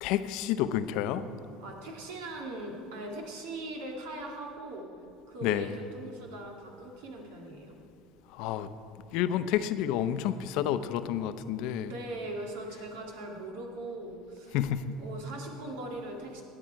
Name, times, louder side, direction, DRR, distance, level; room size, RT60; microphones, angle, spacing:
voice 1, 0.0-1.2 5.4-5.8 8.3-8.7 9.1-12.0 14.5-15.0, left 10 dB, 70° left, 12 dB, 0.6 m, -30 dB
voice 2, 1.6-4.9 5.3-7.7 11.8-14.6 15.0-16.4, right 1 dB, 80° right, 1 dB, 2.1 m, -40 dB
16.5 x 9.0 x 4.6 m, 2.5 s
supercardioid pair, 90°, 0 cm